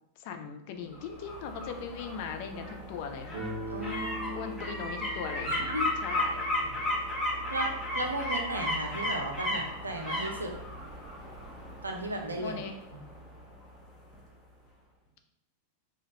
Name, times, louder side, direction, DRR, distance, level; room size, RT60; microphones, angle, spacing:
voice 1, 0.2-3.5 4.3-6.5 12.4-12.7, left 6 dB, 45° left, 6 dB, 0.4 m, -39 dB
sound 1, 1.0-13.8 14.1-14.2, left 1 dB, 5° left, 1.1 m, -35 dB
Guitar, 3.3-8.1, right 2 dB, 30° right, 1.3 m, -43 dB
voice 2, 3.7-4.5 5.6-5.9 7.5-10.5 11.8-12.7, right 1 dB, 80° right, 3 dB, 0.5 m, -35 dB
4.3 x 2.4 x 2.9 m, 0.78 s
figure-of-eight pair, 90°, 0 cm